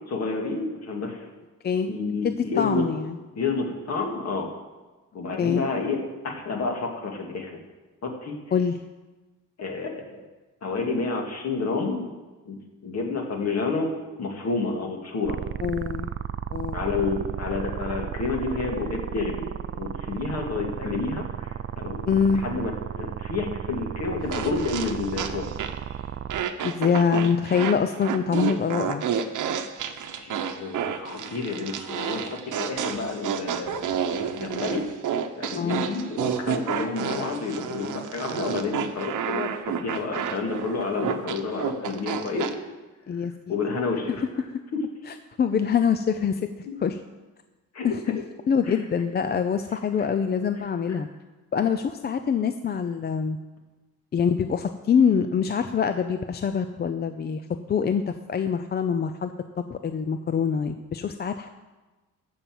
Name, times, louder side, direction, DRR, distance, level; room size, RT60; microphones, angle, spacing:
voice 1, 0.1-1.2 1.9-2.9 3.4-4.5 5.1-6.0 6.2-7.6 8.0-8.3 9.6-10.3 10.6-12.1 12.5-12.6 12.8-13.9 14.2-15.4 16.7-19.4 19.8-25.5 30.0-42.5 43.5-44.2 46.6-46.7 47.7-47.9 48.7-48.8 50.0-50.1 50.9-51.0, left 4 dB, 50° left, 2 dB, 2.2 m, -30 dB
voice 2, 2.2-3.2 5.4-5.6 8.5-8.8 15.6-16.1 16.5-16.8 22.1-22.4 26.6-29.0 35.6-35.9 43.1-43.6 45.1-46.5 46.8-47.0 47.8-48.2 48.5-51.1 51.5-53.4 54.1-57.4 57.7-59.3 59.7-61.5, left 6 dB, 30° left, 9 dB, 0.4 m, -24 dB
sound 1, 15.2-26.4, right 9 dB, 40° right, 0.4 m, -34 dB
sound 2, 24.3-25.9 26.3-42.5, right 8 dB, 65° right, 0.9 m, -30 dB
14.0 x 5.6 x 7.6 m, 1.2 s
cardioid pair, 145°, 33 cm